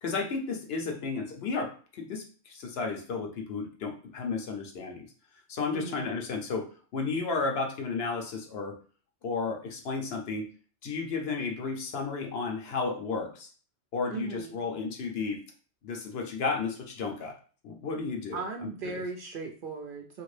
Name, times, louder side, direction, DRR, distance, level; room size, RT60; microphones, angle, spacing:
voice 1, 0.0-5.0 5.5-8.7 9.2-10.5 10.8-13.5 13.9-15.4 15.8-17.3 17.6-18.4 18.8-19.0, left 4 dB, 65° left, 3 dB, 0.9 m, -33 dB
voice 2, 5.7-6.1 14.1-14.5 18.3-20.2, right 4 dB, 60° right, 2 dB, 0.6 m, -37 dB
2.9 x 2.5 x 3.2 m, 0.40 s
omnidirectional pair, 1.2 m